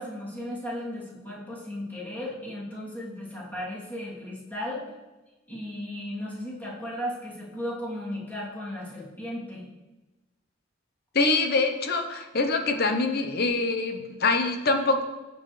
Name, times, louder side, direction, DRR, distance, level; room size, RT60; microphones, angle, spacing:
voice 1, 0.0-4.8 5.5-9.6, left 1 dB, 10° left, -8 dB, 3.0 m, -35 dB
voice 2, 11.1-15.0, left 3 dB, 55° left, 6 dB, 0.9 m, -24 dB
15.5 x 6.3 x 3.3 m, 1.1 s
head